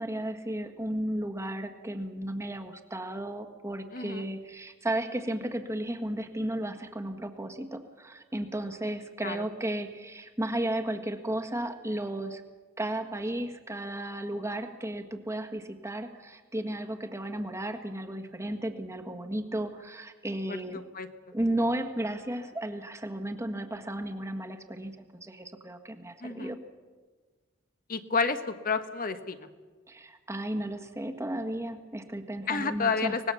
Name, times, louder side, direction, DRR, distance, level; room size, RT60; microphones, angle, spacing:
voice 1, 0.0-12.4 12.8-20.8 21.3-26.6 29.9-33.2, right 1 dB, 15° right, 4 dB, 1.6 m, -34 dB
voice 2, 3.9-4.2 9.2-9.5 20.5-21.1 26.2-26.5 27.9-29.5 32.5-33.3, left 5 dB, 45° left, 9 dB, 1.4 m, -30 dB
25.0 x 19.5 x 7.1 m, 1.4 s
head